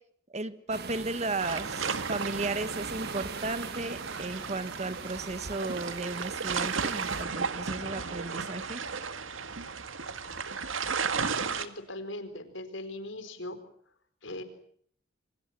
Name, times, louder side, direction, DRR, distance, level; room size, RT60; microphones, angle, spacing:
voice 1, 0.3-8.8, right 2 dB, 35° right, 12 dB, 1.5 m, -35 dB
sound 1, 0.7-7.2, right 4 dB, 55° right, 1.7 m, -42 dB
sound 2, 1.4-11.7, right 5 dB, 85° right, 1.9 m, -34 dB
voice 2, 11.5-13.6 14.2-14.4, left 1 dB, 75° left, 10 dB, 4.5 m, -40 dB
27.5 x 25.0 x 7.5 m, 0.63 s
head